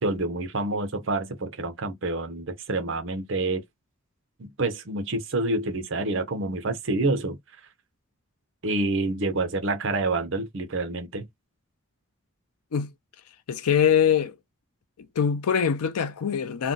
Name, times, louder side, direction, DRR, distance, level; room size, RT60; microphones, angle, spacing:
voice 1, 0.0-3.6 4.4-7.4 8.6-11.3, right 2 dB, 55° right, 0.6 m, -27 dB
voice 2, 13.5-14.3 15.2-16.7, left 7 dB, 90° left, 0.5 m, -23 dB
2.5 x 2.2 x 3.7 m
head